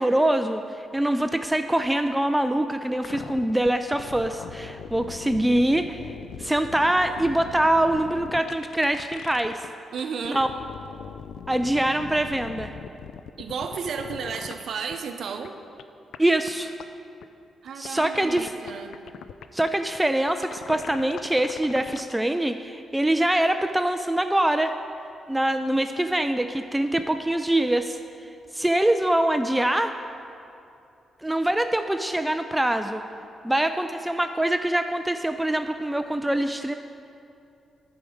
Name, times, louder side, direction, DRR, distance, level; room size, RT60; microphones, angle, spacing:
voice 1, 0.0-9.7 10.3-10.5 11.5-12.7 16.2-16.7 17.8-18.5 19.5-24.8 25.3-28.0 28.5-29.9 31.2-33.0 33.4-36.7, right 1 dB, 10° right, 8 dB, 0.3 m, -24 dB
sound 1, 3.0-9.7 10.0-14.6 14.9-15.0 15.4-15.5 15.8-15.9 16.1-16.2 16.5-16.6 16.8-16.9 17.2-17.3 17.8-19.7 20.3-22.0, left 8 dB, 80° left, 0.3 m, -40 dB
voice 2, 9.9-10.4 13.4-15.6 17.6-18.9, right 6 dB, 70° right, 6 dB, 0.7 m, -33 dB
11.0 x 5.1 x 6.3 m, 2.6 s
cardioid pair, 95°, 0 cm